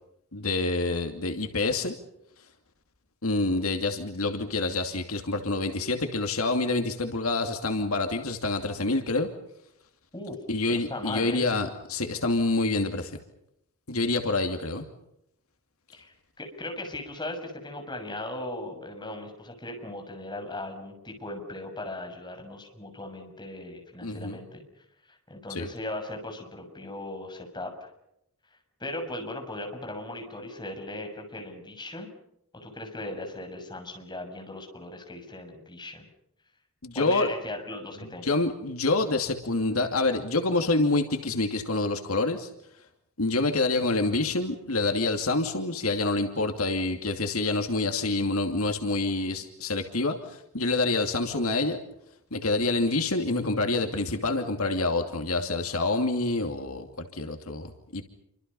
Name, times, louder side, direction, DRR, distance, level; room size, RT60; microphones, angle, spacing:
voice 1, 0.3-1.9 3.2-9.3 10.5-13.1 13.9-14.8 24.0-24.4 25.5-25.7 36.8-37.3 38.2-42.5 43.2-51.8 52.3-58.0, left 2 dB, 75° left, 5 dB, 2.7 m, -27 dB
voice 2, 10.7-11.4 15.9-24.6 25.1-27.9 28.8-32.1 32.6-36.1 36.9-38.4, left 1 dB, 20° left, 3 dB, 6.6 m, -38 dB
29.5 x 25.5 x 5.6 m, 0.79 s
head